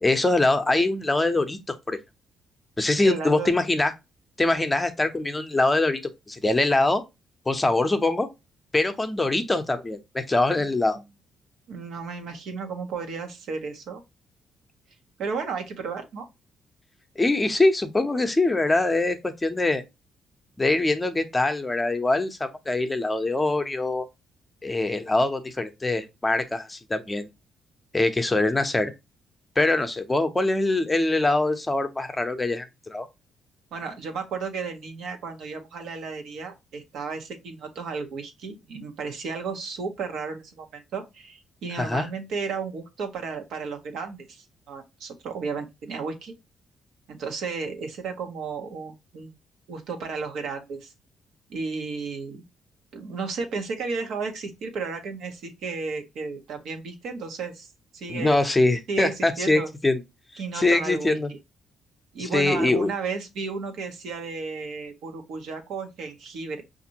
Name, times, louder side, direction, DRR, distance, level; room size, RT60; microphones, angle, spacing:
voice 1, 0.0-2.0 2.8-3.9 4.4-6.0 6.3-7.0 7.5-8.3 8.7-11.0 17.2-19.8 20.6-24.1 24.6-27.3 27.9-28.9 29.6-33.1 41.8-42.1 58.1-60.0 60.5-61.3 62.2-62.9, left 2 dB, 15° left, 0.6 m, -23 dB
voice 2, 3.0-3.5 10.9-11.0 11.7-14.0 15.2-16.3 33.7-46.3 47.1-49.3 49.7-50.9 51.5-52.4 52.9-57.7 57.9-58.4 58.9-59.7 60.4-61.4 62.1-66.6, right 4 dB, 75° right, 0.9 m, -33 dB
5.1 x 2.6 x 2.8 m
cardioid pair, 90°, 0 cm